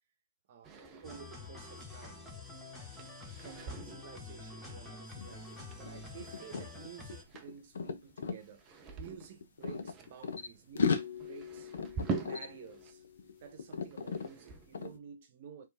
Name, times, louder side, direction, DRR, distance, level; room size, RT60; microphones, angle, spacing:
voice 1, 0.5-2.3 3.4-11.7 12.1-13.0 13.4-15.7, right 7 dB, 40° right, 1.1 m, -52 dB
sound 1, 0.6-12.9 13.2-14.8, right 4 dB, 15° right, 0.6 m, -45 dB
sound 2, 1.0-7.2, left 3 dB, 5° left, 1.0 m, -47 dB
sound 3, 5.2-5.3 5.6-8.4 9.2-10.5 10.8-13.3 13.6-14.3 14.7-15.0, left 5 dB, 70° left, 0.9 m, -36 dB
4.5 x 3.3 x 3.5 m
hypercardioid pair, 160°, 0 cm